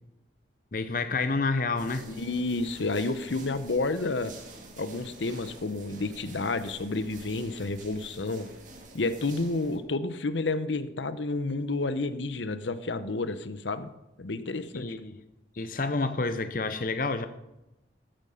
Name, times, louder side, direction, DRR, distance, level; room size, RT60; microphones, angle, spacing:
voice 1, 0.7-2.1 14.7-15.1 15.5-17.3, left 3 dB, 50° left, 10 dB, 0.7 m, -29 dB
sound 1, 1.8-9.8, right 2 dB, 45° right, 2.1 m, -48 dB
voice 2, 2.1-4.3 4.8-8.5 8.9-13.9 14.2-14.9, left 3 dB, 85° left, 12 dB, 0.8 m, -30 dB
14.0 x 8.8 x 5.5 m, 0.97 s
head